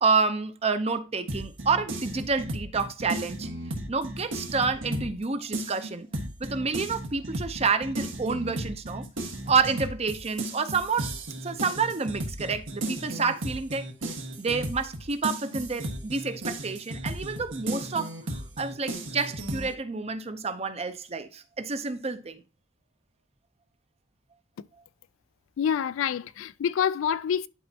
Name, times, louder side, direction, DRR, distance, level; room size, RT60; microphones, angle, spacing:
voice 1, 0.0-3.5 3.9-6.1 6.4-9.0 9.5-11.1 11.4-13.9 14.4-22.4, right 4 dB, 30° right, 0.6 m, -28 dB
sound 1, 1.3-5.2 5.5-19.7, right 1 dB, 75° right, 1.4 m, -35 dB
voice 2, 25.6-27.5, left 8 dB, 85° left, 0.3 m, -27 dB
11.0 x 4.3 x 2.8 m
head